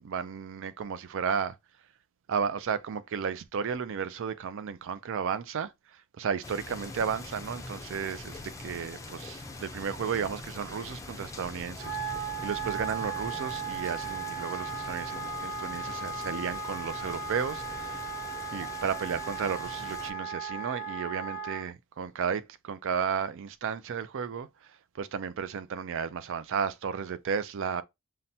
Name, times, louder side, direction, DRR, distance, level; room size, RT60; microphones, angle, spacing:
voice 1, 0.0-1.6 2.3-18.1 18.5-27.8, right 6 dB, 60° right, 0.4 m, -33 dB
sound 1, 6.4-20.1, left 2 dB, 15° left, 0.4 m, -43 dB
Wind instrument woodwind instrument, 11.7-21.6, right 4 dB, 40° right, 1.7 m, -36 dB
5.6 x 2.2 x 2.7 m
head